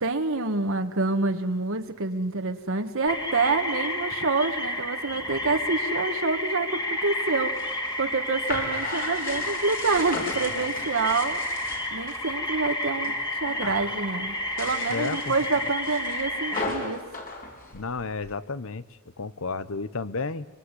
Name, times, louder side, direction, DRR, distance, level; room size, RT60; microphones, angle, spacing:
voice 1, 0.0-11.4 11.9-17.0, right 3 dB, 65° right, 5 dB, 1.6 m, -27 dB
sound 1, 3.1-16.6, left 1 dB, 20° left, 2.7 m, -31 dB
sound 2, 7.3-12.2 12.6-13.2 13.4-13.9 14.4-18.3, left 2 dB, 40° left, 4.7 m, -36 dB
voice 2, 14.9-15.3 17.7-18.8 19.2-20.5, left 3 dB, 65° left, 16 dB, 1.0 m, -31 dB
24.5 x 24.0 x 9.9 m, 1.2 s
head